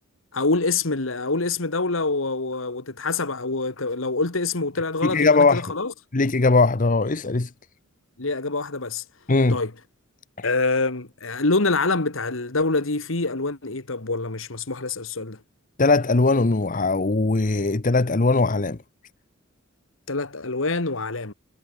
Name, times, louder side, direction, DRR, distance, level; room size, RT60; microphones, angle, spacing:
voice 1, 0.3-5.9 8.2-9.0 9.5-9.7 10.4-15.4 20.1-21.3, left 3 dB, 75° left, 2.0 m, -25 dB
voice 2, 5.0-5.7 6.1-7.5 9.3-9.6 10.4-10.5 15.8-18.8, left 3 dB, 40° left, 0.9 m, -20 dB
head